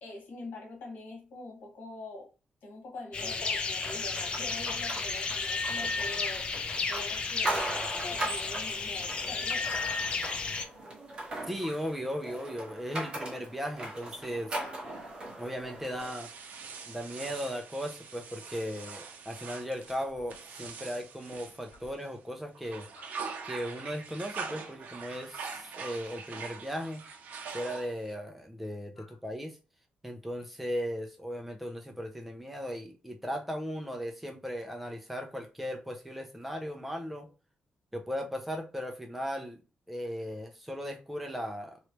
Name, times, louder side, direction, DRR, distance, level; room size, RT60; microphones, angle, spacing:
voice 1, 0.0-2.3 2.6-6.5 6.8-9.7 14.6-14.8 22.9-23.1 29.0-29.2, left 2 dB, 85° left, 1.4 m, -45 dB
sound 1, 3.1-10.7, left 4 dB, 35° left, 0.5 m, -33 dB
sound 2, 3.8-16.1, right 2 dB, 30° right, 1.3 m, -39 dB
voice 2, 11.4-14.5 15.4-16.3 16.9-22.9 23.4-27.0 27.5-29.6 30.0-37.3 37.9-39.6 39.9-41.8, equal, 5° right, 0.6 m, -37 dB
sound 3, 16.0-22.2 22.6-28.1, right 5 dB, 65° right, 0.6 m, -43 dB
3.1 x 3.0 x 2.9 m
wide cardioid pair, 155°, 3 cm